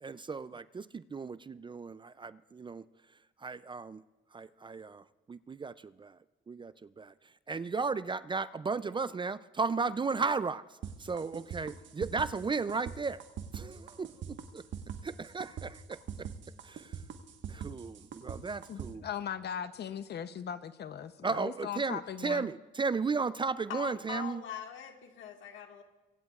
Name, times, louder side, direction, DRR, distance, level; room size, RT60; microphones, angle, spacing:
voice 1, 0.0-2.9 3.4-4.0 4.3-6.2 6.5-13.2 13.5-14.1 15.0-16.3 16.6-17.0 17.5-19.1 21.2-24.4, right 4 dB, 25° right, 15 dB, 0.4 m, -35 dB
sound 1, 10.8-18.9, right 8 dB, 70° right, 1.4 m, -42 dB
voice 2, 18.7-22.5, left 8 dB, 55° left, 12 dB, 0.7 m, -39 dB
voice 3, 23.7-25.8, left 9 dB, 80° left, 3 dB, 1.7 m, -42 dB
25.0 x 16.5 x 2.4 m, 1.1 s
cardioid pair, 90°, 20 cm